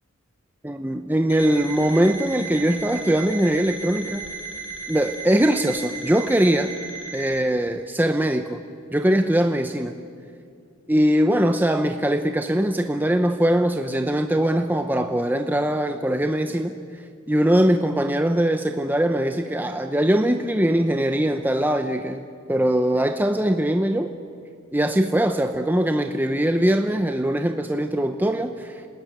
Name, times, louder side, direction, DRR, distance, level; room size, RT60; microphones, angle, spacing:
voice 1, 0.6-4.3 4.9-6.7 7.1-8.6 8.9-9.9 10.9-16.8 17.3-24.1 24.7-28.8, right 1 dB, 10° right, 6 dB, 0.7 m, -21 dB
Alarm, 1.3-7.4, right 4 dB, 70° left, 6.4 m, -35 dB
27.5 x 19.0 x 9.3 m, 2.3 s
head